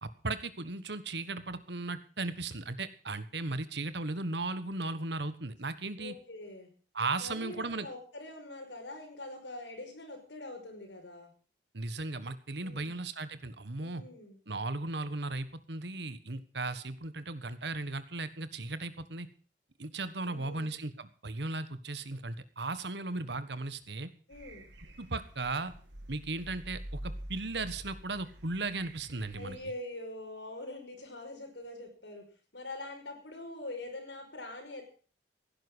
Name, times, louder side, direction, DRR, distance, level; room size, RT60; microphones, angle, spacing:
voice 1, 0.0-6.1 6.9-7.9 11.7-14.0 14.5-19.3 19.8-24.1 25.0-25.7 26.1-29.6, right 3 dB, 65° right, 13 dB, 1.5 m, -36 dB
voice 2, 6.0-6.7 7.2-11.3 12.6-12.9 13.8-14.4 20.2-20.7 24.3-24.7 29.3-32.3 32.5-34.8, left 2 dB, 75° left, 3 dB, 5.7 m, -44 dB
sound 1, 24.3-29.7, right 1 dB, 85° right, 2.6 m, -47 dB
16.5 x 10.5 x 6.3 m, 0.42 s
head